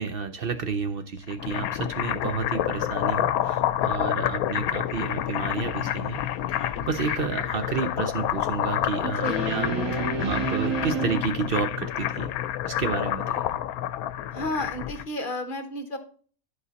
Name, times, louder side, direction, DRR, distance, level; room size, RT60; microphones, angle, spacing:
voice 1, 0.0-6.2 6.5-12.3 12.7-13.4, right 5 dB, 55° right, 9 dB, 0.7 m, -31 dB
sound 1, 1.2-15.1, left 11 dB, 85° left, 1.1 m, -28 dB
sound 2, 6.8-7.2 9.2-11.2, right 3 dB, 85° right, 2.4 m, -29 dB
voice 2, 9.0-9.4 14.3-16.0, left 1 dB, 40° left, 8 dB, 1.1 m, -31 dB
11.0 x 5.0 x 4.0 m, 0.42 s
omnidirectional pair, 1.5 m